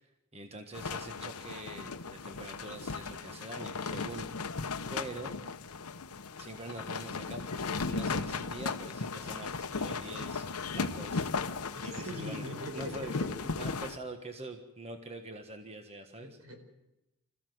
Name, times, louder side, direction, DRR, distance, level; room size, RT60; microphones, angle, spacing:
voice 1, 0.0-5.3 6.4-10.5 10.7-16.4, right 2 dB, 30° right, 5 dB, 1.4 m, -45 dB
sound 1, 0.7-14.0, left 4 dB, 90° left, 1.0 m, -36 dB
voice 2, 11.8-13.3 16.2-16.6, equal, 75° right, 5 dB, 4.8 m, -41 dB
26.5 x 15.0 x 7.9 m, 0.93 s
head